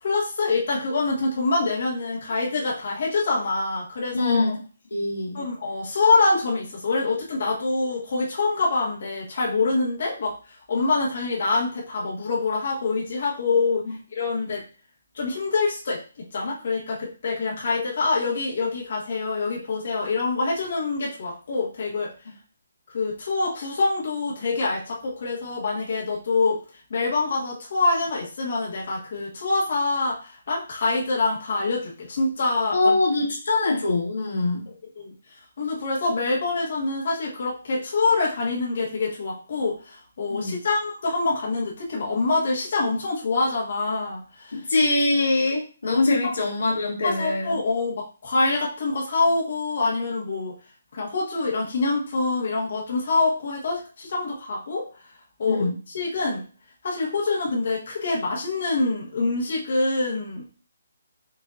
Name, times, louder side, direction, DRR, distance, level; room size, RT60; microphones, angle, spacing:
voice 1, 0.0-4.5 5.3-13.8 14.1-14.6 15.1-22.1 22.9-26.6 26.9-33.0 34.7-35.1 35.6-44.6 46.2-46.3 47.0-50.5 50.9-54.9 55.4-56.4 56.8-60.5, left 3 dB, 55° left, -4 dB, 1.5 m, -25 dB
voice 2, 4.1-4.6 4.9-5.4 32.7-34.7 40.3-40.6 44.5-47.5 55.4-55.7, left 2 dB, 80° left, -2 dB, 1.5 m, -23 dB
6.5 x 2.7 x 2.5 m, 0.37 s
hypercardioid pair, 170°, 0 cm